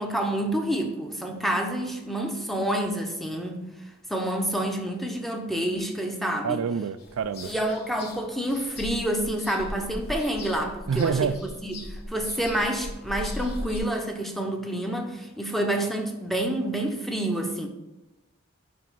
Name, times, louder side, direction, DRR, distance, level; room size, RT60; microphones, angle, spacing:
voice 1, 0.0-3.7 4.1-6.6 7.4-17.7, right 1 dB, ahead, 3 dB, 0.7 m, -28 dB
voice 2, 6.4-7.5 10.9-11.3, right 6 dB, 85° right, 14 dB, 0.4 m, -26 dB
sound 1, 7.0-13.8, left 1 dB, 50° left, 1.2 m, -39 dB
5.5 x 5.1 x 5.6 m, 1.0 s
head